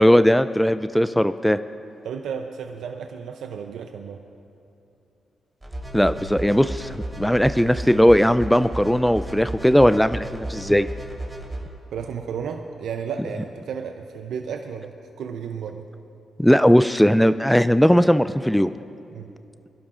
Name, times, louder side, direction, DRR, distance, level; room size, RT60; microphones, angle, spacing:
voice 1, 0.0-1.6 5.9-10.9 16.4-18.7, equal, 5° left, 12 dB, 0.3 m, -18 dB
voice 2, 2.0-4.2 11.9-15.9 19.1-19.3, right 6 dB, 80° right, 5 dB, 0.5 m, -33 dB
sound 1, 5.6-11.6, right 1 dB, 20° right, 3.5 m, -34 dB
24.5 x 11.5 x 2.5 m, 2.7 s
cardioid pair, 65°, 0 cm